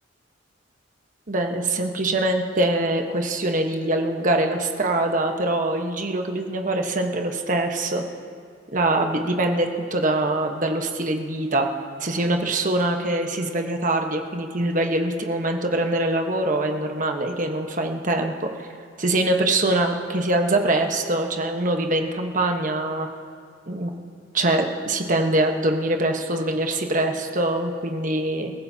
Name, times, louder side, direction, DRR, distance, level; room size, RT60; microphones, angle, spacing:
voice 1, 1.3-8.0 8.7-11.7 12.0-18.5 19.0-23.1 23.7-23.9 24.3-28.5, right 2 dB, 45° right, 3 dB, 1.2 m, -23 dB
29.5 x 15.0 x 2.8 m, 2.2 s
head